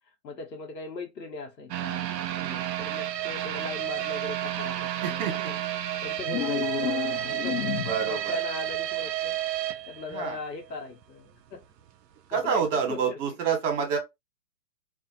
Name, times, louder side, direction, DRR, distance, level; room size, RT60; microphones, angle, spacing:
voice 1, 0.2-2.1 2.8-5.6 6.0-9.4 9.9-11.6 12.3-13.4, left 3 dB, 85° left, 1.0 m, -39 dB
sound 1, 1.7-10.7 11.0-11.1 11.6-11.7, right 13 dB, 80° right, 0.5 m, -31 dB
voice 2, 2.4-2.7 5.0-5.5 7.8-8.4 10.1-10.4 12.3-14.0, right 6 dB, 50° right, 1.2 m, -28 dB
sound 2, 6.2-8.2, left 11 dB, 70° left, 0.7 m, -31 dB
2.5 x 2.4 x 2.7 m
hypercardioid pair, 130°, 49 cm